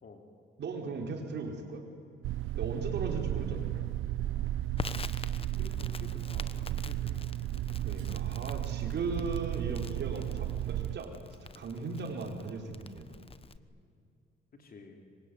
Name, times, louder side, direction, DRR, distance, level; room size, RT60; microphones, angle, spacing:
voice 1, 0.6-1.8 2.5-3.7 7.8-13.2, right 3 dB, 60° right, 3 dB, 5.0 m, -38 dB
sound 1, 2.2-11.0, right 13 dB, 85° right, 0.7 m, -34 dB
Crackle, 4.8-13.6, left 4 dB, 30° left, 1.1 m, -45 dB
voice 2, 5.6-7.2 14.5-15.1, left 3 dB, 50° left, 4 dB, 3.5 m, -51 dB
26.0 x 24.0 x 9.7 m, 2.5 s
cardioid pair, 90°, 20 cm